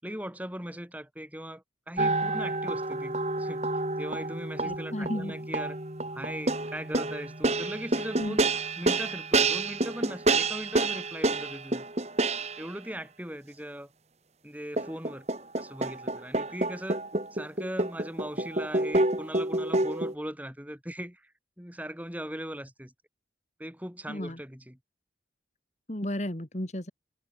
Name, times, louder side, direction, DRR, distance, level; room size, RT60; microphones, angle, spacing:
voice 1, 0.0-5.8 6.1-8.5 8.8-11.9 12.6-13.9 14.4-15.3 15.6-17.1 17.3-21.3 21.6-22.9 23.6-24.8, equal, 10° right, 4.6 m, -39 dB
sound 1, 2.0-12.7 14.8-20.1, right 2 dB, 35° right, 2.4 m, -28 dB
voice 2, 4.6-5.4 8.2-8.4 24.1-24.4 25.9-26.9, left 1 dB, 40° left, 2.2 m, -33 dB
head